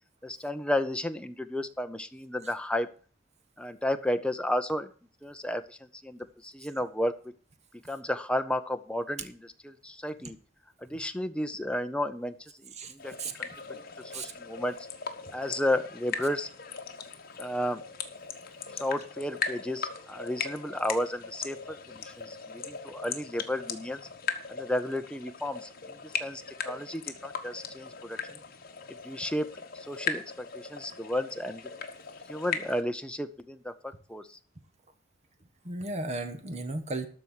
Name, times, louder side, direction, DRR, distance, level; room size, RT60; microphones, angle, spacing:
voice 1, 0.2-2.9 3.6-4.9 5.2-5.8 6.0-7.1 7.9-9.4 9.6-10.4 10.8-13.5 14.1-14.9 15.3-16.5 17.4-17.8 18.7-24.0 24.5-28.4 28.9-29.5 29.7-31.7 32.3-34.4, left 1 dB, 5° left, 8 dB, 0.7 m, -33 dB
voice 2, 12.7-13.3 14.1-14.3 35.6-37.1, right 2 dB, 35° right, 9 dB, 1.3 m, -35 dB
sound 1, 13.0-32.8, left 6 dB, 50° left, 1.3 m, -39 dB
13.0 x 4.6 x 8.2 m, 0.42 s
head